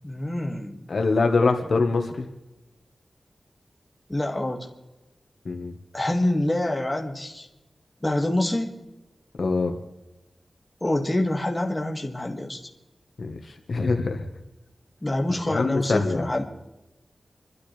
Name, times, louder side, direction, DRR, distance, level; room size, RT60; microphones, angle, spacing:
voice 1, 0.0-0.9 4.1-4.7 5.9-7.5 8.0-8.7 10.8-12.6 15.0-16.4, left 1 dB, 15° left, 1 dB, 2.1 m, -26 dB
voice 2, 0.9-2.3 5.4-5.7 9.4-9.7 13.2-14.2 15.5-16.2, left 3 dB, 70° left, 4 dB, 1.5 m, -24 dB
27.5 x 12.5 x 3.4 m, 1.0 s
wide cardioid pair, 110°, 0 cm